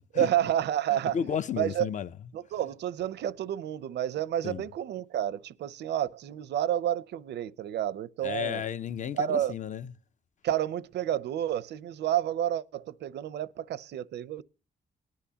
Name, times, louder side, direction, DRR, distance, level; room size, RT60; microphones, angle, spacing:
voice 1, 0.1-1.2 1.5-1.9 2.3-8.6 9.1-9.5 10.4-14.4, right 11 dB, 80° right, 0.6 m, -30 dB
voice 2, 1.1-2.1 4.4-4.6 8.2-9.9, left 8 dB, 45° left, 0.6 m, -32 dB
19.0 x 10.5 x 2.8 m
wide cardioid pair, 145°, 17 cm